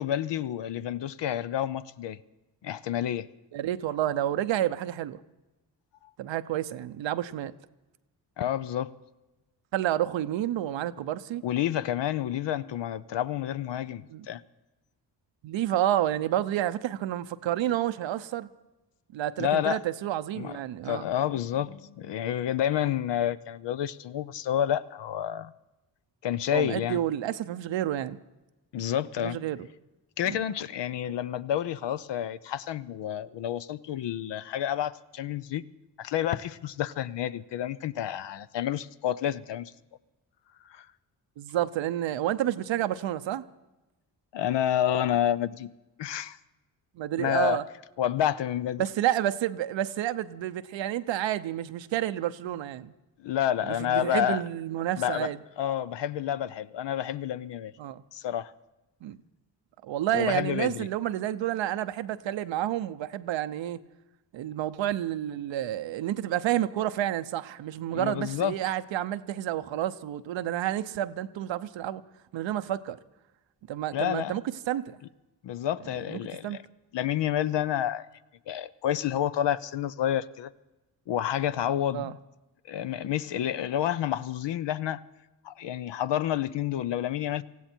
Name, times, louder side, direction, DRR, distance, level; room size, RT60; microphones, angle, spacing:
voice 1, 0.0-2.2 2.6-3.3 8.4-8.9 11.4-14.4 19.4-19.8 20.4-20.5 20.8-25.5 26.2-27.0 28.7-29.4 30.2-35.6 36.0-39.7 40.6-40.9 44.3-45.7 46.0-46.4 47.2-47.6 48.0-48.8 53.2-54.4 55.0-55.3 55.6-57.7 58.1-58.5 60.1-60.9 67.9-68.5 73.9-74.4 75.4-76.6 76.9-78.1 78.5-80.5 81.1-82.1 82.6-85.0 85.4-87.4, left 11 dB, 70° left, 0.7 m, -29 dB
voice 2, 3.5-5.2 6.2-7.5 9.7-11.4 14.1-14.3 15.4-18.5 19.1-21.1 26.5-28.2 29.2-29.7 30.2-30.4 41.4-43.4 47.0-47.6 48.8-52.9 53.6-55.4 57.8-58.0 59.0-59.2 59.8-63.8 64.3-72.0 72.3-73.0 73.7-74.4 74.7-75.0 76.1-76.6 81.9-82.1, right 12 dB, 80° right, 0.7 m, -30 dB
19.0 x 15.0 x 4.4 m
cardioid pair, 65°, 44 cm